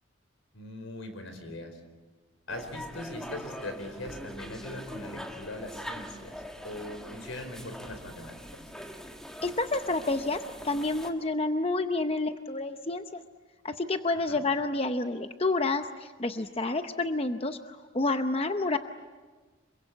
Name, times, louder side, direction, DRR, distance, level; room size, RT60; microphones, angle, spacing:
voice 1, 0.5-1.8 2.5-6.3 6.6-8.6 14.3-14.4, left 1 dB, 80° left, 7 dB, 4.7 m, -40 dB
sound 1, 2.5-11.1, equal, 5° left, 1.7 m, -43 dB
voice 2, 9.4-13.2 13.6-18.8, left 2 dB, 30° left, 8 dB, 0.7 m, -29 dB
27.0 x 23.5 x 8.3 m, 1.3 s
head